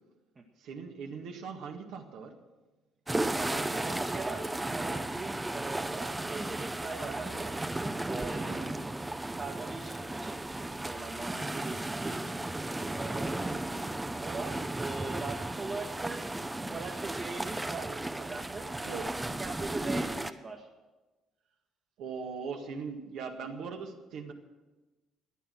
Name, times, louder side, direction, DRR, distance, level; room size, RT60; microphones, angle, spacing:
voice 1, 0.6-2.3 7.0-7.2 8.5-8.7 18.8-19.0 22.0-24.3, right 5 dB, 65° right, 3 dB, 1.8 m, -40 dB
sound 1, 3.1-20.3, right 2 dB, 15° right, 0.8 m, -35 dB
voice 2, 3.3-7.5 8.0-8.5 9.3-12.4 12.9-13.3 14.2-16.4 16.7-18.7 19.2-20.7, right 3 dB, 35° right, -1 dB, 1.7 m, -41 dB
13.5 x 11.0 x 7.7 m, 1.2 s
hypercardioid pair, 50°, 0 cm